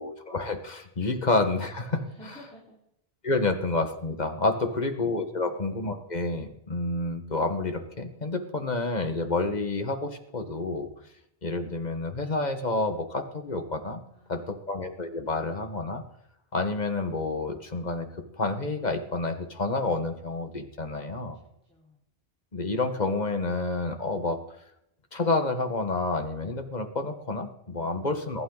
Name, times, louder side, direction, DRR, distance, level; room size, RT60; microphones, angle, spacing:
voice 1, 0.0-2.1 3.2-10.9 11.4-14.0 14.3-16.0 16.5-18.1 18.3-21.4 22.5-24.4 25.1-28.4, left 3 dB, 45° left, 6 dB, 1.7 m, -29 dB
voice 2, 2.0-2.8 3.3-3.5 5.3-5.5 11.0-11.1 14.1-14.6 20.9-22.0, equal, 5° left, -7 dB, 4.5 m, -53 dB
22.0 x 12.0 x 4.0 m, 0.79 s
omnidirectional pair, 1.0 m